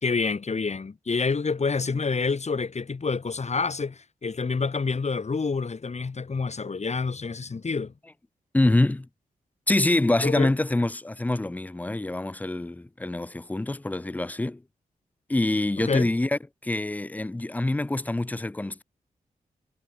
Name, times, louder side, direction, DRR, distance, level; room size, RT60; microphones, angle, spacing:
voice 1, 0.0-7.9 10.2-10.5 15.8-16.1, left 4 dB, 45° left, 1.5 m, -28 dB
voice 2, 8.5-9.1 9.7-14.6 15.3-18.8, left 2 dB, 10° left, 0.4 m, -25 dB
supercardioid pair, 45°, 16 cm